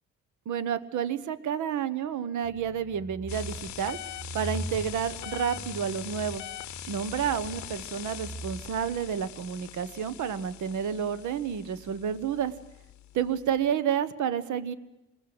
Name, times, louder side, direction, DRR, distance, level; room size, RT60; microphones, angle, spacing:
voice 1, 0.4-4.0 4.3-6.5 6.9-12.5 13.1-14.7, right 8 dB, 75° right, 13 dB, 1.3 m, -30 dB
sound 1, 2.4-9.3, right 1 dB, 55° right, 4.2 m, -41 dB
sound 2, 3.3-13.7, left 13 dB, 70° left, 0.8 m, -43 dB
26.5 x 20.5 x 8.0 m, 0.94 s
cardioid pair, 90°, 30 cm